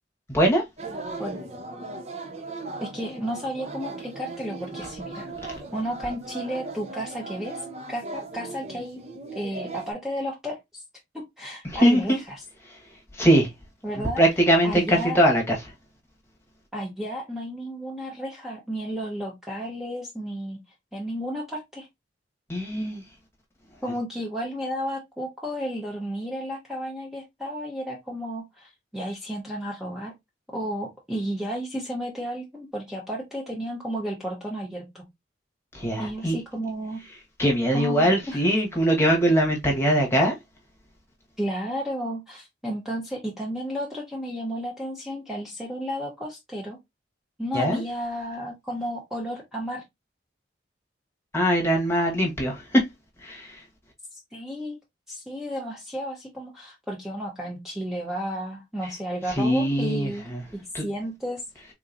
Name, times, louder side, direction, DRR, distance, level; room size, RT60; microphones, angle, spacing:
voice 1, 0.3-0.6 11.6-12.2 12.6-12.8 13.1-13.5 13.9-15.6 22.5-23.0 35.7-36.4 37.4-40.4 47.5-47.8 51.3-52.8 53.2-53.6 58.8-58.9 59.3-60.4 60.7-60.9, right 1 dB, 15° left, 1.2 m, -22 dB
sound 1, 0.8-9.9, right 3 dB, 35° right, 0.5 m, -38 dB
voice 2, 2.8-7.6 7.9-9.0 9.3-10.8 11.1-12.4 13.8-14.2 14.6-15.2 16.7-20.6 20.9-21.9 23.8-30.1 30.5-35.0 36.0-37.0 37.7-38.4 41.4-46.8 47.4-49.8 54.1-54.8 55.1-60.3 60.5-61.4, equal, ahead, 0.7 m, -32 dB
3.7 x 2.9 x 2.4 m
head